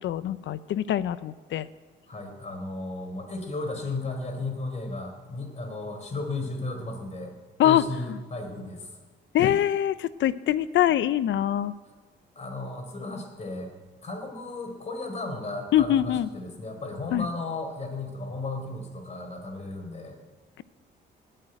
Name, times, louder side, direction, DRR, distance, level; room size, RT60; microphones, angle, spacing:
voice 1, 0.0-1.7 7.6-8.2 9.3-11.7 15.7-16.3 17.1-17.3, left 11 dB, 70° left, 16 dB, 0.7 m, -24 dB
voice 2, 2.1-7.3 7.6-8.9 12.4-13.7 14.0-20.2, left 2 dB, 35° left, 2 dB, 4.0 m, -34 dB
18.5 x 6.7 x 9.2 m, 1.3 s
cardioid pair, 90°, 20 cm